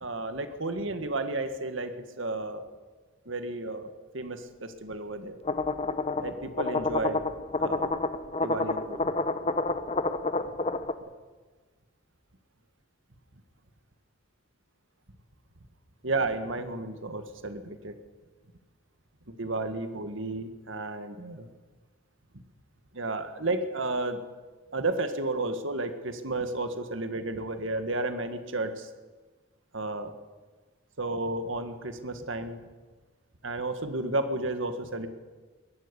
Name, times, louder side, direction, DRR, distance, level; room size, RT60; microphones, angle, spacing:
voice 1, 0.0-2.7 3.3-5.4 6.2-7.2 7.6-7.9 8.4-9.1 16.0-17.9 19.3-21.5 22.9-24.2 24.7-28.9 29.7-30.1 31.0-32.6 33.4-35.1, right 2 dB, 65° right, 8 dB, 1.9 m, -32 dB
sound 1, 5.5-10.9, left 3 dB, 30° left, 0.9 m, -29 dB
22.0 x 12.5 x 10.0 m, 1.3 s
head